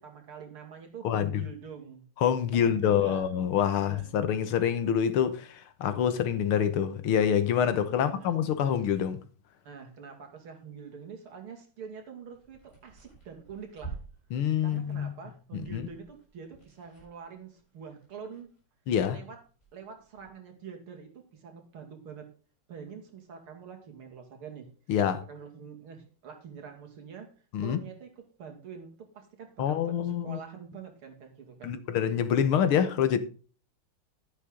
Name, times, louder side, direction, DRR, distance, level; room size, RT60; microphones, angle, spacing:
voice 1, 0.0-2.0 2.5-3.3 3.7-4.2 7.9-8.4 9.6-14.0 14.6-18.5 19.1-19.4 19.7-22.3 22.7-24.7 25.1-27.3 27.6-31.8, right 6 dB, 85° right, 3.2 m, -45 dB
voice 2, 1.0-1.4 2.2-9.2 14.3-15.1 15.5-15.9 18.9-19.2 24.9-25.2 27.5-27.8 29.6-30.4 31.6-33.2, left 8 dB, 80° left, 2.0 m, -26 dB
sound 1, 12.0-19.0 19.3-20.3, right 4 dB, 25° left, 6.8 m, -49 dB
11.5 x 9.9 x 3.8 m
omnidirectional pair, 2.3 m